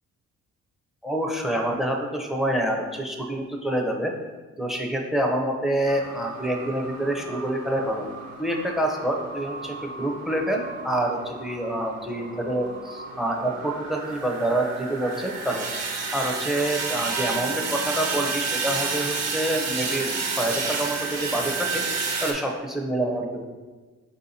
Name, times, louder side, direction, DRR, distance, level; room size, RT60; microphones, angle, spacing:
voice 1, 1.0-4.1 4.6-8.0 8.4-15.7 16.1-20.1 20.4-21.8 22.2-23.4, right 1 dB, ahead, 2 dB, 0.5 m, -27 dB
sound 1, 5.9-22.3, right 4 dB, 60° right, 0.9 m, -31 dB
4.5 x 2.7 x 4.1 m, 1.3 s
cardioid pair, 90°, 30 cm